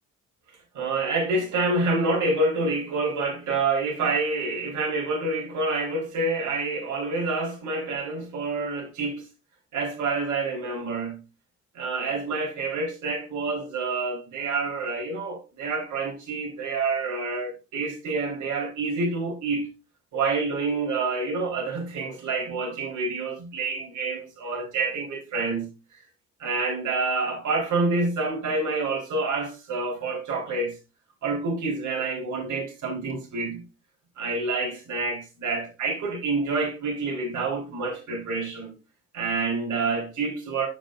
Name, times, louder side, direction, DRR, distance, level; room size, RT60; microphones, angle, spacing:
voice 1, 0.7-9.2 9.7-11.2 11.7-19.7 20.1-25.7 26.4-30.7 31.2-33.6 34.2-38.7 39.1-40.7, right 3 dB, 75° right, 3.9 m, -27 dB
8.1 x 6.1 x 2.5 m
cardioid pair, 90°, 30 cm